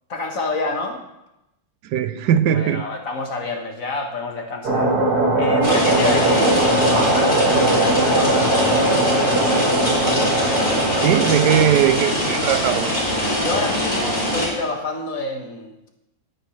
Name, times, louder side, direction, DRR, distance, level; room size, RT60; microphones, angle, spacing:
voice 1, 0.1-1.0 2.5-4.9 5.4-8.5 13.4-15.7, left 3 dB, 50° left, 2 dB, 1.7 m, -28 dB
voice 2, 1.8-2.9 11.0-12.9, right 9 dB, 80° right, 12 dB, 1.2 m, -19 dB
sound 1, 4.6-11.6, right 2 dB, 60° right, 2.3 m, -20 dB
sound 2, 5.6-14.5, equal, 30° left, 5.2 m, -23 dB
19.5 x 9.5 x 3.2 m, 0.92 s
omnidirectional pair, 1.9 m